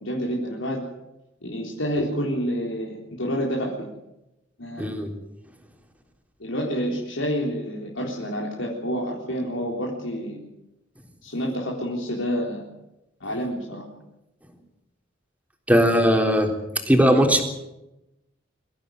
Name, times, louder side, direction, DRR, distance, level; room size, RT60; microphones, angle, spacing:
voice 1, 0.0-0.8 1.4-3.9 4.6-4.9 6.4-10.4 11.2-12.7 13.2-13.8, equal, 85° left, -2 dB, 3.9 m, -28 dB
voice 2, 4.8-5.1 15.7-16.5 16.9-17.4, equal, 10° right, 3 dB, 3.5 m, -18 dB
24.5 x 15.0 x 9.4 m, 0.92 s
head